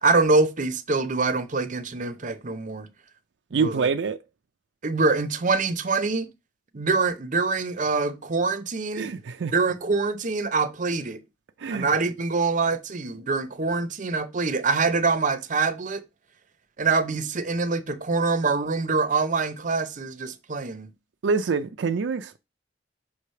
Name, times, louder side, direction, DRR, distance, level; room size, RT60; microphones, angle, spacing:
voice 1, 0.0-2.9 3.5-3.9 4.8-6.3 6.7-9.1 9.5-11.2 11.7-16.0 16.8-20.9, right 4 dB, 45° right, 0.7 m, -25 dB
voice 2, 3.5-4.2 8.9-9.5 11.6-11.9 21.2-22.4, right 5 dB, 80° right, 0.4 m, -26 dB
5.8 x 3.2 x 5.5 m
head